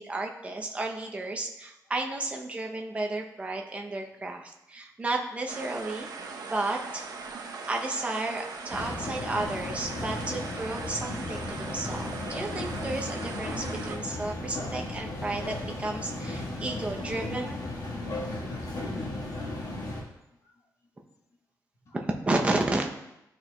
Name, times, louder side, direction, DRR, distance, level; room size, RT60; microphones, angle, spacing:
voice 1, 0.0-6.1 6.4-7.1 7.7-17.6 21.9-22.9, right 2 dB, 20° right, 1 dB, 0.6 m, -32 dB
sound 1, 5.5-14.0, right 4 dB, 70° right, 0.7 m, -40 dB
sound 2, 8.7-20.0, left 2 dB, 85° left, 1.4 m, -35 dB
voice 2, 10.9-11.2 16.6-16.8 17.1-17.2 18.6-18.7 20.4-20.5 21.1-21.2 21.9-22.0, left 2 dB, 45° left, 0 dB, 1.1 m, -58 dB
11.0 x 4.4 x 2.2 m, 0.87 s
wide cardioid pair, 175°, 7 cm